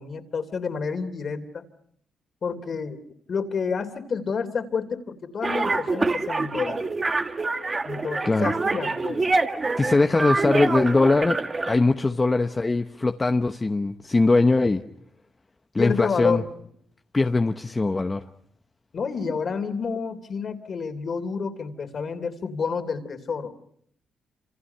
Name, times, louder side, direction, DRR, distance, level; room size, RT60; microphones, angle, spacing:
voice 1, 0.0-1.6 2.4-3.0 3.3-6.8 7.8-9.2 15.8-16.4 18.9-23.5, left 5 dB, 45° left, 9 dB, 3.0 m, -29 dB
sound 1, 5.4-11.7, right 3 dB, 25° right, 1.7 m, -26 dB
voice 2, 9.8-11.4 11.7-14.8 15.7-16.4 17.1-18.2, left 3 dB, 20° left, 6 dB, 0.9 m, -21 dB
28.5 x 27.5 x 5.7 m, 0.69 s
cardioid pair, 120°, 0 cm